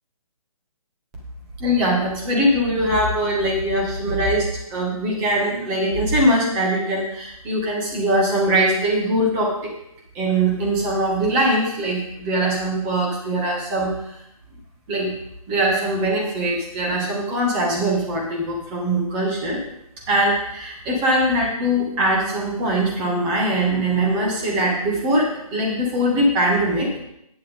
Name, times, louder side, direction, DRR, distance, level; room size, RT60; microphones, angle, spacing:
voice 1, 1.6-9.7 10.1-14.0 14.9-15.1 15.5-19.6 20.1-26.9, right 1 dB, 15° right, -2 dB, 1.9 m, -21 dB
10.5 x 9.9 x 3.7 m, 0.78 s
hypercardioid pair, 165°, 19 cm